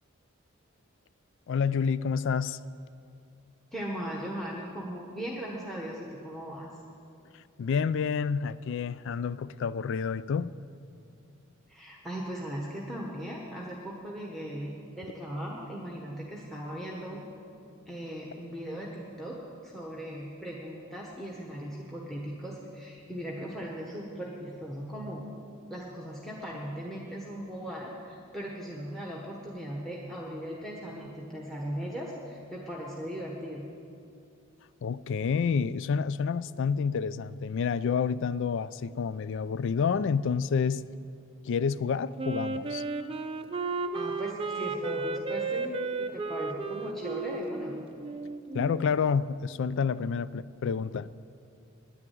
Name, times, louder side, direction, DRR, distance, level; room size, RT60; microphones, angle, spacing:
voice 1, 1.5-2.6 7.6-10.5 34.8-40.8 41.4-42.8 48.5-51.1, left 6 dB, 60° left, 18 dB, 0.3 m, -29 dB
voice 2, 3.7-6.7 11.7-17.2 17.9-25.3 25.7-33.6 43.9-47.7, equal, ahead, -2 dB, 1.1 m, -38 dB
Wind instrument woodwind instrument, 42.2-48.9, right 3 dB, 25° right, 0.5 m, -33 dB
10.0 x 9.6 x 9.2 m, 2.5 s
head